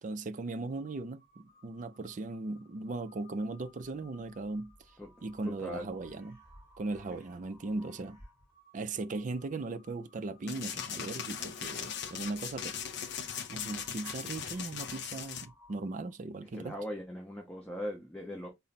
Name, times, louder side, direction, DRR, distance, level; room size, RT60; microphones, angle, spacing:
voice 1, 0.0-4.7 5.2-6.4 6.8-8.2 8.7-12.8 13.5-16.7, right 3 dB, 40° right, 0.4 m, -38 dB
Crow, 0.7-16.2, equal, 15° right, 2.5 m, -60 dB
voice 2, 5.4-5.9 16.5-18.5, equal, 5° left, 0.7 m, -39 dB
sound 1, 10.5-15.5, left 8 dB, 60° left, 0.5 m, -39 dB
3.9 x 2.0 x 4.0 m
head